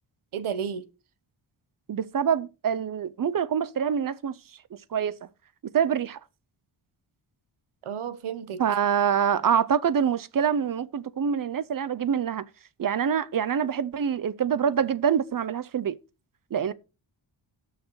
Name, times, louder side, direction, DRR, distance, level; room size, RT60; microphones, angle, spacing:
voice 1, 0.3-0.8 7.8-8.6, right 7 dB, 85° right, 1.1 m, -32 dB
voice 2, 1.9-4.3 4.7-5.3 5.7-6.2 8.6-12.4 12.8-16.0 16.5-16.7, right 8 dB, 45° right, 0.5 m, -25 dB
18.5 x 6.4 x 3.1 m
wide cardioid pair, 170°, 48 cm